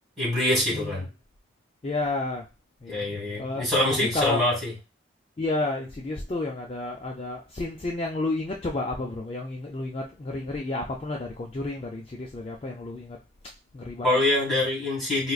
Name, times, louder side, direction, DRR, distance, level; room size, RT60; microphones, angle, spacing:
voice 1, 0.2-1.1 2.9-4.7 14.0-15.3, left 1 dB, ahead, -7 dB, 1.8 m, -25 dB
voice 2, 0.7-1.1 1.8-2.4 2.8-4.4 5.4-13.2 13.7-14.2, left 2 dB, 30° left, 0 dB, 0.3 m, -31 dB
4.3 x 2.4 x 2.3 m, 0.29 s
head